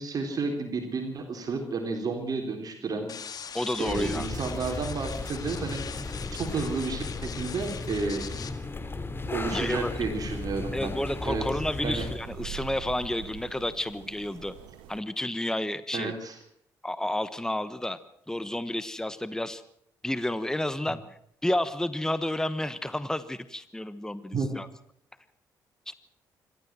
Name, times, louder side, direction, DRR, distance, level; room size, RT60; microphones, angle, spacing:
voice 1, 0.0-3.1 3.8-5.8 6.4-8.4 9.3-10.9 11.2-11.6 11.8-12.1 15.9-16.4 20.9-21.0 24.3-24.6, right 4 dB, 50° right, 4 dB, 3.9 m, -31 dB
sound 1, 3.1-8.5, left 7 dB, 55° left, 2.0 m, -41 dB
voice 2, 3.5-4.3 9.5-9.9 10.7-14.5 14.9-16.1 16.8-18.0 18.3-19.6 20.0-21.0 21.4-24.7 25.9-26.0, left 1 dB, 5° left, 14 dB, 1.3 m, -31 dB
sound 2, 3.9-12.2, left 3 dB, 30° left, 2.9 m, -35 dB
sound 3, 9.2-15.0, right 10 dB, 85° right, 1.6 m, -45 dB
26.0 x 13.0 x 7.6 m, 0.71 s
supercardioid pair, 60°, 8 cm